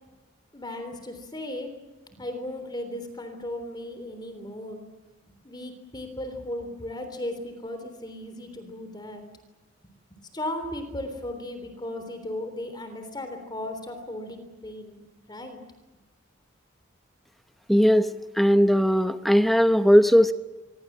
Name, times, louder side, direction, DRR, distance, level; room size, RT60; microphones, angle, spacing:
voice 1, 0.5-1.7 2.1-4.8 5.4-9.3 10.1-15.0 15.3-15.6, left 1 dB, 20° left, 7 dB, 3.5 m, -36 dB
voice 2, 17.7-20.3, equal, ahead, 10 dB, 0.9 m, -19 dB
26.5 x 24.0 x 7.5 m, 1.2 s
head